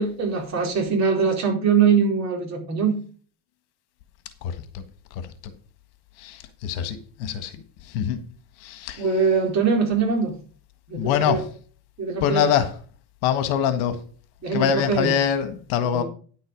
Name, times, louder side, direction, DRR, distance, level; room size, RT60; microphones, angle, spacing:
voice 1, 0.0-3.0 9.0-10.4 10.9-11.4 12.0-12.4 14.4-15.1 15.9-16.0, right 5 dB, 35° right, 4.2 m, -22 dB
voice 2, 4.4-4.8 5.1-5.2 6.2-7.5 7.9-8.2 8.6-9.0 10.9-11.5 12.2-12.7 13.2-14.0 14.5-16.0, left 8 dB, 70° left, 1.7 m, -24 dB
10.0 x 8.0 x 5.2 m
cardioid pair, 145°, 49 cm